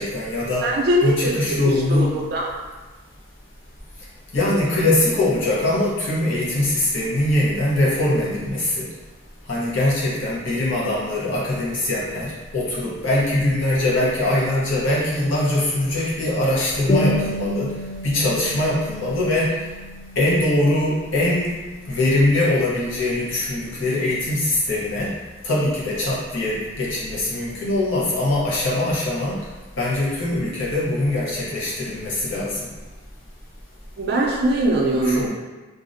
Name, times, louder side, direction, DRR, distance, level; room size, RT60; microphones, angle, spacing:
voice 1, 0.0-0.7 1.0-2.1 4.3-8.9 9.5-17.7 18.0-19.6 20.2-21.6 21.9-25.1 25.4-29.4 29.8-32.6 35.0-35.3, left 1 dB, 70° left, -6 dB, 0.7 m, -22 dB
voice 2, 0.6-2.5 34.0-35.3, right 1 dB, 50° right, -1 dB, 0.4 m, -21 dB
sound 1, 16.9-21.9, left 1 dB, 25° left, 0.8 m, -30 dB
2.4 x 2.1 x 2.5 m, 1.2 s
head